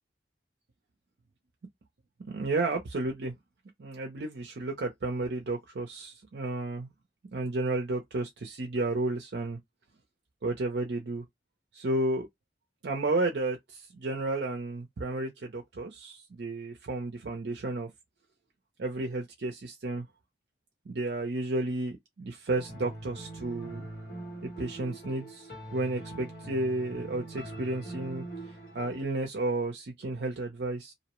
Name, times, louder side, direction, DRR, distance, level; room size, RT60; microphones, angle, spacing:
voice 1, 2.3-3.3 3.8-6.9 7.3-9.6 10.4-11.2 11.7-12.3 12.8-17.9 18.8-20.1 20.9-23.8 24.4-28.2 28.7-30.9, right 2 dB, 65° right, 0.5 m, -32 dB
sound 1, 22.5-29.0, right 2 dB, 50° left, 1.4 m, -43 dB
2.6 x 2.0 x 2.9 m
head